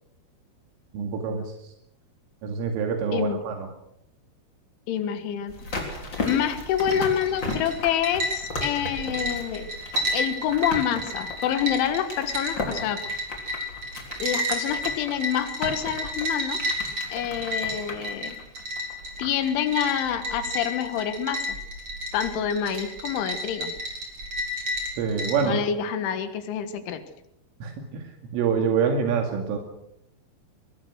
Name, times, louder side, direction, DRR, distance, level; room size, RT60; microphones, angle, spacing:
voice 1, 0.9-1.7 2.4-3.7 25.0-25.6 27.6-29.6, right 6 dB, 85° right, 3 dB, 4.9 m, -26 dB
voice 2, 4.9-5.5 6.2-9.7 10.1-13.0 14.2-16.8 17.1-18.4 19.2-21.6 22.1-23.7 25.4-27.0, left 9 dB, 75° left, 10 dB, 4.0 m, -27 dB
sound 1, 5.5-19.5 19.8-19.9, left 3 dB, 25° left, 3.6 m, -36 dB
sound 2, 5.6-25.5, left 1 dB, 30° right, 4.8 m, -32 dB
22.5 x 21.5 x 6.3 m, 0.79 s
omnidirectional pair, 5.6 m